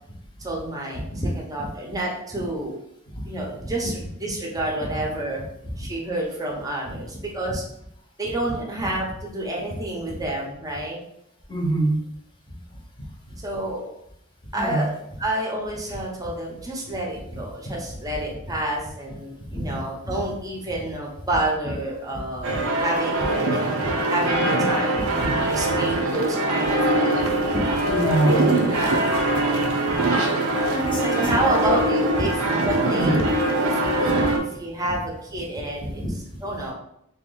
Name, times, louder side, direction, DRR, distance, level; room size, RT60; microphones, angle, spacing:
voice 1, 0.4-1.0 1.3-2.8 3.3-5.4 5.8-7.6 8.2-11.0 13.4-13.9 14.5-14.9 15.2-22.5 22.8-23.8 24.1-27.5 28.2-29.4 31.1-32.3 32.6-33.2 33.7-36.0 36.4-36.7, right 1 dB, 15° right, -1 dB, 0.8 m, -29 dB
voice 2, 11.5-12.0 14.5-14.9 19.5-20.1 22.3-22.6 25.0-25.3 27.5-28.6 30.7-31.7 32.9-33.3 33.8-33.9 34.2-34.3 35.9-36.1, right 1 dB, 20° left, -2 dB, 1.0 m, -26 dB
sound 1, 22.4-34.4, right 1 dB, 70° right, 0.6 m, -22 dB
3.0 x 2.9 x 3.9 m, 0.76 s
head